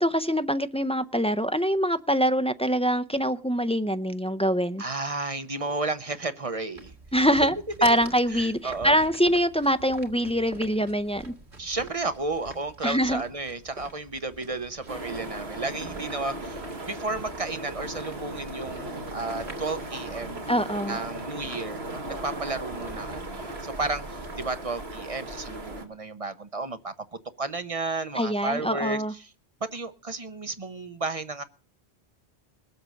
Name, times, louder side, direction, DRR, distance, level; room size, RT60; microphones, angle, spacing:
voice 1, 0.0-4.8 7.1-7.5 7.8-11.3 12.8-13.2 20.5-21.0 28.1-29.1, equal, 10° left, 0.3 m, -24 dB
voice 2, 4.8-6.9 8.3-9.0 11.6-16.6 16.9-20.4 20.9-29.3 29.6-31.4, right 3 dB, 35° right, 0.8 m, -33 dB
sound 1, 6.8-24.6, right 2 dB, 85° right, 2.5 m, -47 dB
sound 2, 14.9-25.9, right 1 dB, 70° right, 2.1 m, -37 dB
20.0 x 8.0 x 6.4 m
omnidirectional pair, 1.1 m